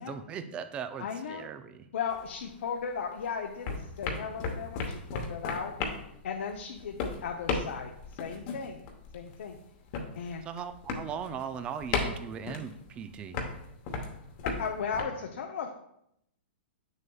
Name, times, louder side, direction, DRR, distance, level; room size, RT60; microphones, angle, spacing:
voice 1, 0.0-1.9 10.5-13.5, right 7 dB, 15° right, 10 dB, 0.3 m, -39 dB
voice 2, 1.0-1.5 1.9-5.7 6.2-8.8 9.1-9.6 10.1-10.5 14.4-15.7, left 6 dB, 70° left, 2 dB, 0.6 m, -36 dB
sound 1, 2.1-3.2 3.5-15.0, left 4 dB, 35° left, 0.9 m, -36 dB
7.4 x 6.5 x 2.3 m, 0.77 s
hypercardioid pair, 155°, 7 cm